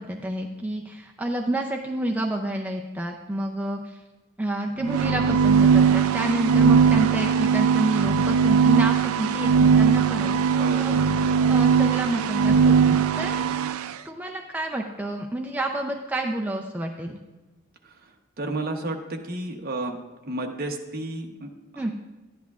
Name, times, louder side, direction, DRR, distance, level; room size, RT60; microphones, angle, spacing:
voice 1, 0.0-4.0 4.4-10.9 11.5-13.7 14.0-17.2 21.8-21.9, right 1 dB, 5° right, 1 dB, 0.4 m, -29 dB
sound 1, 4.8-13.9, right 6 dB, 85° right, 0.4 m, -20 dB
voice 2, 10.6-11.0 17.8-20.0 20.2-21.9, right 2 dB, 45° right, 3 dB, 0.9 m, -32 dB
11.5 x 10.5 x 2.4 m, 1.1 s
head